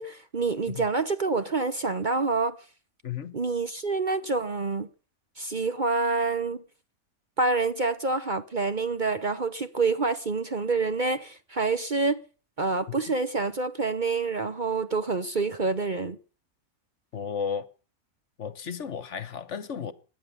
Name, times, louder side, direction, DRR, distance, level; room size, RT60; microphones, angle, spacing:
voice 1, 0.0-2.6 3.3-4.9 5.4-6.6 7.4-12.2 12.6-16.2, right 3 dB, 40° right, 0.9 m, -27 dB
voice 2, 3.0-3.4 12.9-13.1 17.1-17.7 18.4-19.9, left 7 dB, 60° left, 1.3 m, -34 dB
17.5 x 11.0 x 7.0 m
omnidirectional pair, 1.5 m